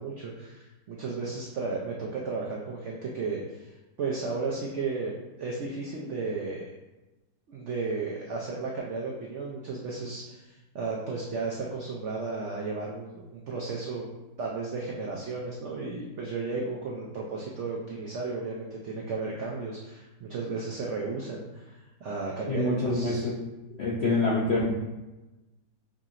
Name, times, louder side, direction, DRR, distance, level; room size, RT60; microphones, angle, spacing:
voice 1, 0.0-3.7 4.0-5.1 5.4-6.7 7.5-14.1 14.4-23.3 24.0-24.3, right 4 dB, 90° right, -2 dB, 0.6 m, -34 dB
voice 2, 22.5-23.3 23.8-24.7, left 2 dB, 70° left, -6 dB, 0.6 m, -26 dB
4.9 x 2.8 x 2.4 m, 1.1 s
omnidirectional pair, 1.8 m